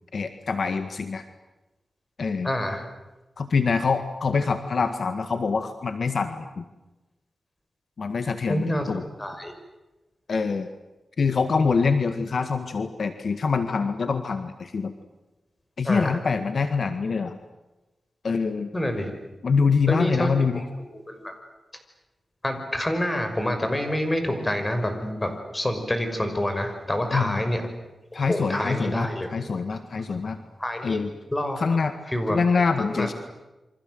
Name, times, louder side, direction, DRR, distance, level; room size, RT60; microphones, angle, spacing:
voice 1, 0.1-1.2 2.2-2.5 3.4-6.6 8.0-9.0 10.3-10.7 11.2-14.9 15.8-17.4 18.2-18.7 19.4-20.6 27.1-27.4 28.1-30.4 30.8-31.1 31.6-31.9 32.3-33.1, left 5 dB, 65° left, 9 dB, 1.8 m, -25 dB
voice 2, 2.4-2.8 8.5-8.9 9.2-9.5 15.8-16.2 18.7-19.1 19.9-21.3 22.4-27.7 28.1-29.3 30.6-31.8 32.1-32.6 32.9-33.1, left 1 dB, 20° left, 7 dB, 5.9 m, -27 dB
28.5 x 25.0 x 7.9 m, 1.1 s
wide cardioid pair, 80°, 0 cm